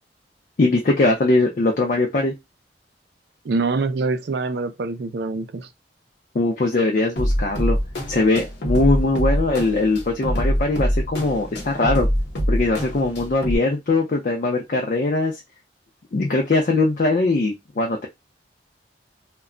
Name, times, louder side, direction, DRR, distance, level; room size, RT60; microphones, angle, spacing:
voice 1, 0.6-2.3 6.3-7.8 8.1-12.1 12.5-15.4 16.1-18.1, left 2 dB, 45° left, 0.4 m, -21 dB
voice 2, 3.4-5.7, right 3 dB, 65° right, 0.4 m, -25 dB
sound 1, 7.2-13.6, equal, 75° left, 0.8 m, -24 dB
2.2 x 2.0 x 3.6 m
head